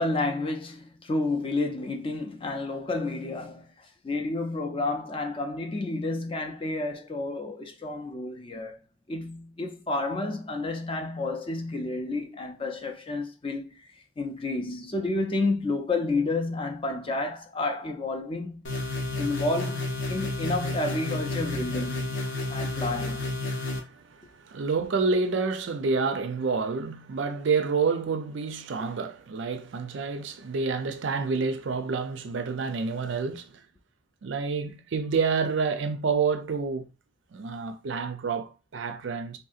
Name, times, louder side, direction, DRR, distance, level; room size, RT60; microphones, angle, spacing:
voice 1, 0.0-8.8 9.1-13.9 14.2-18.6 19.2-22.2 22.5-23.3, left 2 dB, 25° left, 0.4 m, -30 dB
sound 1, 18.6-23.8, left 2 dB, 60° left, 0.7 m, -31 dB
voice 2, 23.8-33.6 34.2-36.9 37.3-39.4, right 4 dB, 60° right, 0.4 m, -28 dB
3.4 x 2.7 x 2.4 m
head